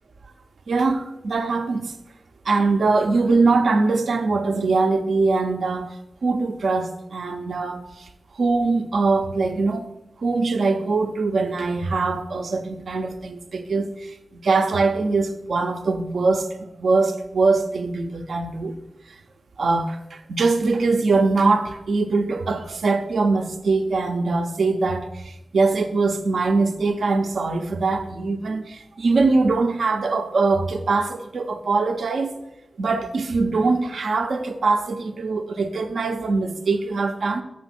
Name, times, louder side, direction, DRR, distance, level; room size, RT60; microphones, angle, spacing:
voice 1, 0.7-2.0 2.4-8.1 8.3-9.9 10.2-18.7 19.1-19.2 19.6-32.3 32.8-37.4, right 3 dB, 80° right, 0.6 m, -22 dB
6.3 x 6.1 x 5.8 m
wide cardioid pair, 75°, 0 cm